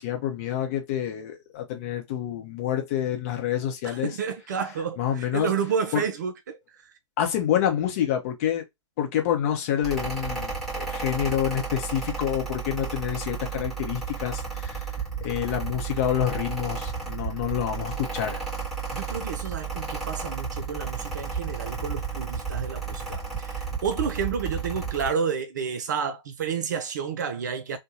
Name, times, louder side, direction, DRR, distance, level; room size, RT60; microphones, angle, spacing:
voice 1, 0.0-4.2 5.0-5.5 5.9-6.0 7.2-8.6 9.0-14.9 15.2-18.4, left 10 dB, 30° left, 0.7 m, -27 dB
voice 2, 3.8-6.6 18.9-27.8, right 6 dB, 40° right, 0.4 m, -30 dB
Mechanical fan, 9.8-25.1, right 5 dB, ahead, 0.9 m, -33 dB
2.6 x 2.2 x 2.9 m
figure-of-eight pair, 125°, 16 cm